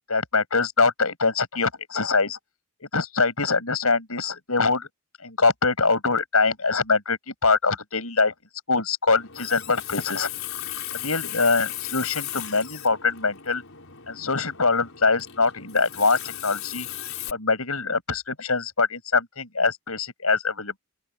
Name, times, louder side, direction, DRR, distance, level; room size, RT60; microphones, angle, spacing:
voice 1, 0.1-2.4 2.8-4.9 5.2-8.3 8.7-10.3 10.9-13.6 14.1-16.9 17.3-20.8, left 4 dB, 80° left, 6.2 m, -23 dB
Water tap faucet, 9.1-17.3, left 12 dB, 65° left, 6.2 m, -36 dB
open air
head